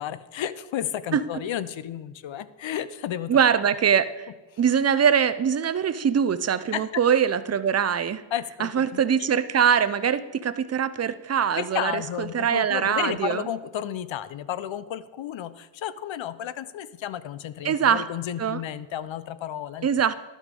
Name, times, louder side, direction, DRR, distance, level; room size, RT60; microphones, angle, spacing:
voice 1, 0.0-3.4 6.7-7.0 8.3-9.0 11.6-19.9, left 10 dB, 70° left, 14 dB, 0.6 m, -32 dB
voice 2, 3.3-4.3 4.6-8.2 8.6-13.5 17.6-18.0 18.4-18.6 19.8-20.1, right 7 dB, 35° right, 14 dB, 0.5 m, -23 dB
11.5 x 6.2 x 5.3 m, 1.2 s
wide cardioid pair, 100°, 47 cm